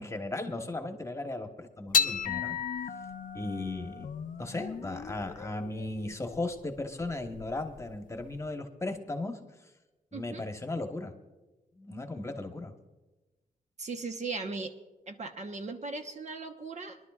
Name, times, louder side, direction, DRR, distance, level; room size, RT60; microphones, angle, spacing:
voice 1, 0.0-2.6 3.3-4.1 4.4-9.4 10.1-11.1 11.8-12.7, left 2 dB, 20° left, 5 dB, 1.2 m, -36 dB
sound 1, 1.9-8.5, left 6 dB, 60° left, 0.6 m, -35 dB
voice 2, 10.1-10.5 13.8-14.7 15.1-17.0, right 3 dB, 50° right, 4 dB, 1.1 m, -38 dB
24.0 x 11.0 x 2.4 m, 1.1 s
cardioid pair, 85°, 16 cm